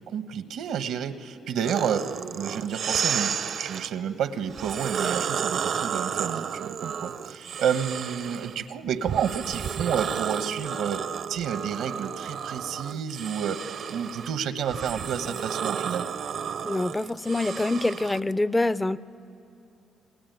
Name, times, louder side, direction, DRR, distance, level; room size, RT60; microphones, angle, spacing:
voice 1, 0.0-16.1, right 8 dB, 80° right, 10 dB, 1.2 m, -30 dB
sound 1, 1.6-3.9 4.5-8.6 9.1-18.2, right 7 dB, 65° right, 0.8 m, -32 dB
voice 2, 16.6-19.0, left 2 dB, 15° left, 17 dB, 0.5 m, -25 dB
28.5 x 20.5 x 9.3 m, 2.9 s
cardioid pair, 90°, 0 cm